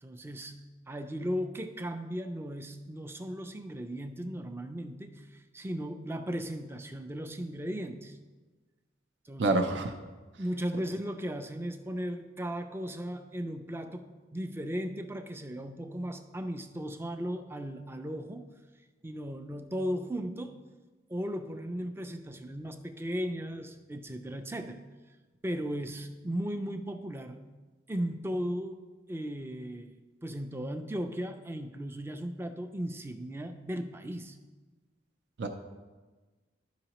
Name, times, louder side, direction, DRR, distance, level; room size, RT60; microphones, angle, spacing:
voice 1, 0.0-8.2 9.2-9.6 10.4-18.5 19.0-20.6 21.1-24.8 25.4-27.4 27.9-28.8 29.1-29.9 30.2-34.4, equal, 10° right, 7 dB, 0.4 m, -36 dB
voice 2, 9.4-9.9 35.4-35.5, right 2 dB, 65° right, 5 dB, 0.5 m, -26 dB
12.0 x 4.8 x 3.0 m, 1.3 s
head